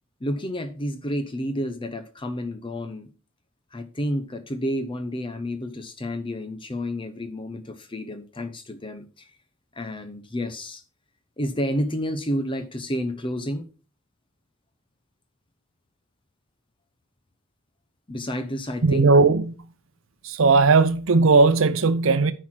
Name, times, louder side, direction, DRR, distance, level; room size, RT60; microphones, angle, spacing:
voice 1, 0.2-3.1 3.7-9.3 9.8-10.8 11.4-13.7 18.1-19.1, equal, 25° left, 0.8 m, -30 dB
voice 2, 18.8-19.5 20.2-22.3, right 4 dB, 80° right, 0.6 m, -17 dB
9.9 x 4.6 x 6.0 m
head